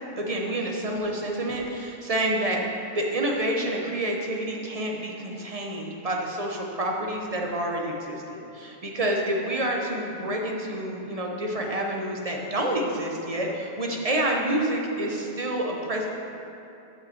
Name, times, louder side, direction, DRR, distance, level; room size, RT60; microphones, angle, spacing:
voice 1, 0.2-2.6 2.9-16.1, right 1 dB, 35° right, 0 dB, 0.9 m, -28 dB
6.9 x 5.5 x 7.1 m, 3.0 s
omnidirectional pair, 1.2 m